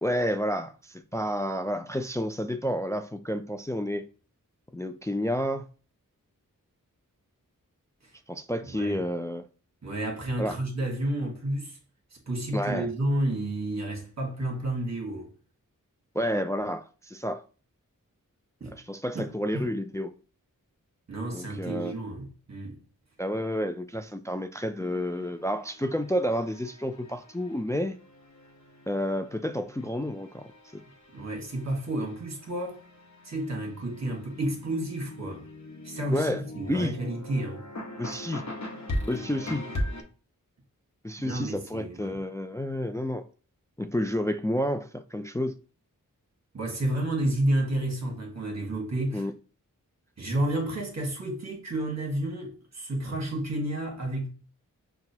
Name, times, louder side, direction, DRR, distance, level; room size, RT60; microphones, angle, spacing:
voice 1, 0.0-4.1 4.7-5.6 8.3-9.5 10.4-10.6 12.5-12.9 16.1-17.4 18.7-20.1 21.3-22.0 23.2-28.0 28.9-30.5 36.1-36.4 36.7-36.9 38.0-38.4 39.1-39.6 41.0-43.2 43.8-45.6 49.1-49.3, equal, 10° left, 0.3 m, -30 dB
voice 2, 8.7-9.0 9.8-11.8 12.3-15.3 18.6-18.8 19.1-19.7 21.1-22.8 31.1-32.8 33.2-35.5 35.8-37.7 41.2-42.2 46.5-49.3 50.2-54.3, right 1 dB, 50° right, 1.3 m, -31 dB
sound 1, 24.8-40.0, left 1 dB, 55° left, 1.0 m, -40 dB
5.8 x 2.3 x 2.7 m
wide cardioid pair, 75°, 33 cm